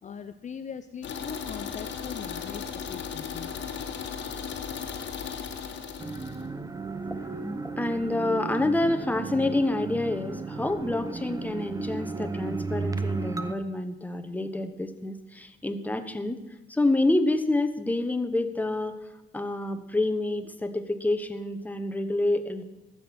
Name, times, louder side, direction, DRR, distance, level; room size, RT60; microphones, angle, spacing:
voice 1, 0.0-3.6, left 7 dB, 40° left, 9 dB, 0.5 m, -40 dB
sound 1, 1.0-6.4, left 7 dB, 65° left, 1.5 m, -36 dB
sound 2, 6.0-13.5, right 3 dB, 15° right, 0.8 m, -34 dB
voice 2, 7.7-16.4 16.7-19.0 19.3-22.6, left 2 dB, 10° left, 8 dB, 1.0 m, -28 dB
14.5 x 6.6 x 5.9 m, 1.0 s
cardioid pair, 90°, 20 cm